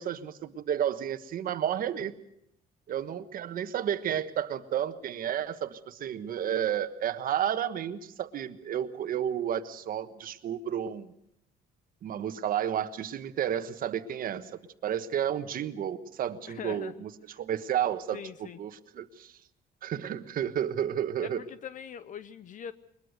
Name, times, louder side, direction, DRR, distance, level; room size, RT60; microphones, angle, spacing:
voice 1, 0.0-2.1 2.9-11.1 12.0-19.4 19.8-21.4, right 10 dB, 55° right, 11 dB, 1.4 m, -32 dB
voice 2, 16.5-17.1 18.1-18.6 21.4-22.7, left 8 dB, 50° left, 14 dB, 0.8 m, -42 dB
21.5 x 21.0 x 6.6 m, 0.79 s
cardioid pair, 110°, 17 cm